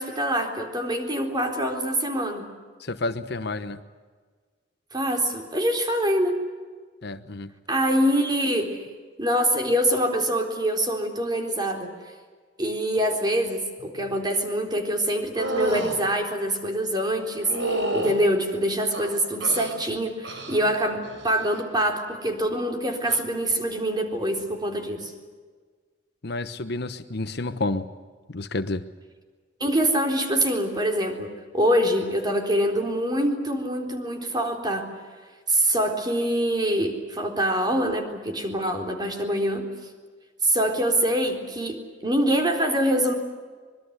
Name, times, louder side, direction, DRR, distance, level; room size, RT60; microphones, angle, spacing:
voice 1, 0.0-2.5 4.9-6.4 7.7-8.8 9.2-11.9 12.6-25.1 29.6-34.9 35.5-39.7 40.4-43.1, right 1 dB, 25° right, 3 dB, 3.9 m, -25 dB
voice 2, 2.9-3.8 7.0-7.5 26.2-27.9 28.3-28.8, left 2 dB, 60° left, 10 dB, 1.1 m, -30 dB
sound 1, 15.4-16.0 17.4-18.2 18.9-19.8 20.2-20.7 21.0-21.5 23.0-23.2, right 1 dB, 80° right, 4.3 m, -29 dB
25.0 x 22.5 x 8.1 m, 1.5 s
head